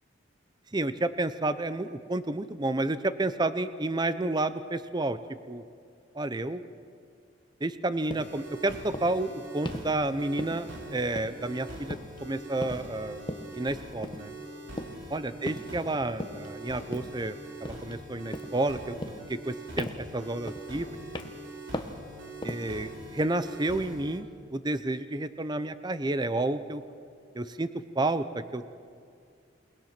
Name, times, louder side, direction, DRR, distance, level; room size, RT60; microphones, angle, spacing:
voice 1, 0.7-5.2 5.5-5.6 6.1-6.6 7.6-13.2 13.5-14.3 15.1-17.4 17.6-19.0 19.3-20.9 22.4-26.8 27.3-27.7 27.9-28.6, right 2 dB, 25° right, 12 dB, 0.6 m, -30 dB
sound 1, 8.1-8.3 8.9-9.2 9.6-9.9 10.4-10.8 11.2-11.6 11.9-12.2 12.6-12.9 13.3-13.6 14.0-14.3 14.8-15.1 15.5-15.8 16.2-16.5 16.9-17.2 17.6-18.0 18.3-18.6 19.0-19.5 19.8-20.1 20.5-20.8 21.1-21.5 21.7-22.0 22.4-22.7, left 1 dB, 25° left, 1.1 m, -38 dB
sound 2, 8.2-24.2, right 1 dB, 70° right, 3.4 m, -43 dB
28.5 x 19.5 x 5.9 m, 2.3 s
head